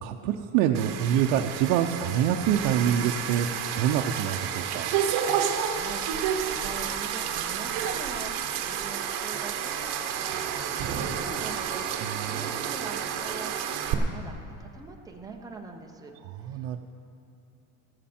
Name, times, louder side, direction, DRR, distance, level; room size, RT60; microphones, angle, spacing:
voice 1, 0.0-4.9 12.0-12.4 16.2-16.8, right 9 dB, 75° right, 2 dB, 0.7 m, -26 dB
sound 1, 0.7-13.9, right 8 dB, 55° right, 1.1 m, -30 dB
voice 2, 5.2-9.9 10.2-16.8, right 4 dB, 10° right, 1 dB, 0.6 m, -44 dB
14.0 x 13.0 x 4.3 m, 2.8 s
cardioid pair, 170°, 45 cm